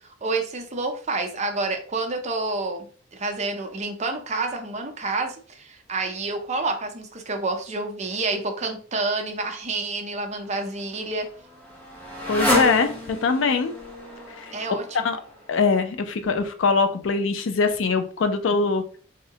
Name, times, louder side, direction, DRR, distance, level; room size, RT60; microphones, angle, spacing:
voice 1, 0.2-2.9 3.1-11.3 14.5-14.8, right 3 dB, 35° right, 5 dB, 0.5 m, -28 dB
Motorcycle, 10.4-15.7, left 1 dB, 5° left, 0.8 m, -30 dB
voice 2, 12.3-13.7 14.4-14.5 14.9-15.2 15.5-18.8, left 4 dB, 70° left, 8 dB, 0.4 m, -22 dB
3.6 x 2.1 x 2.7 m, 0.43 s
head